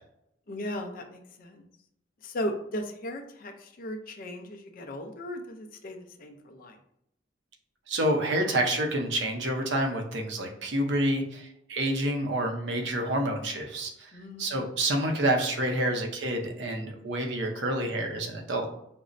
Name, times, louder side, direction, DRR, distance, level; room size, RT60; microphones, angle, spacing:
voice 1, 0.5-1.7 2.2-6.8 14.1-14.6, left 1 dB, 45° left, 5 dB, 0.4 m, -37 dB
voice 2, 7.9-14.1 14.4-18.7, right 1 dB, 60° right, 3 dB, 0.6 m, -28 dB
5.1 x 2.0 x 2.5 m, 0.77 s
head